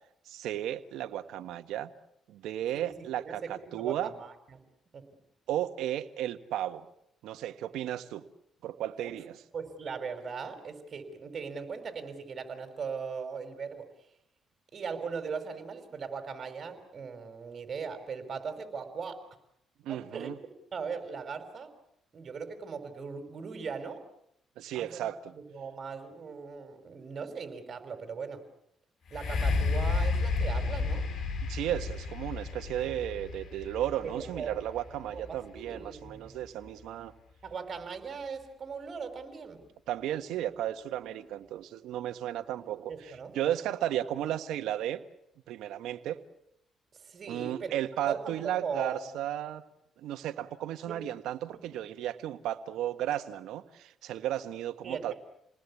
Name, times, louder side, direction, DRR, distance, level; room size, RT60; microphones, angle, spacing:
voice 1, 0.2-1.9 2.3-4.1 5.5-6.8 7.2-8.2 8.6-9.4 19.8-20.3 24.6-25.3 31.5-37.1 39.9-45.0 45.5-46.2 47.3-49.6 50.0-55.1, right 12 dB, 85° right, 9 dB, 1.5 m, -34 dB
voice 2, 2.7-4.6 4.9-5.1 9.0-9.2 9.5-13.9 14.7-19.3 19.9-20.3 20.7-21.7 22.1-24.0 24.7-25.1 25.3-28.4 29.1-31.1 34.0-34.5 35.1-36.4 37.4-39.6 42.9-43.4 44.1-44.2 46.9-47.8 48.1-49.2 50.9-51.0 51.5-51.6 54.8-55.1, right 5 dB, 45° right, 7 dB, 5.2 m, -39 dB
sound 1, 29.1-36.8 37.5-37.6, left 4 dB, 55° left, 3.8 m, -32 dB
29.0 x 19.5 x 8.5 m, 0.77 s
cardioid pair, 90°, 0 cm